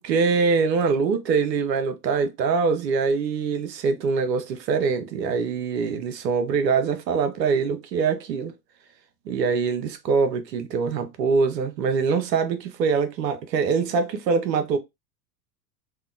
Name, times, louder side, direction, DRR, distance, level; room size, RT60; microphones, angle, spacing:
voice 1, 0.0-8.5 9.3-14.8, right 5 dB, 80° right, 0.7 m, -23 dB
2.8 x 2.1 x 2.4 m
hypercardioid pair, 95°, 50 cm